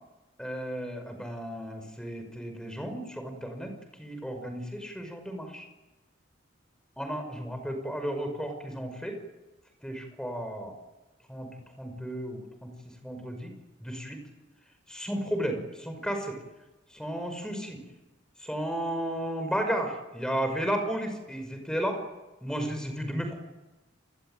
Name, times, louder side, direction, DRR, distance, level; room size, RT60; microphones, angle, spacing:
voice 1, 0.4-5.7 7.0-9.2 9.8-10.8 11.3-13.5 13.8-14.2 14.9-16.4 16.9-17.8 18.4-22.0 22.4-23.4, equal, 5° left, 6 dB, 5.6 m, -33 dB
29.5 x 21.0 x 9.3 m, 1.1 s
head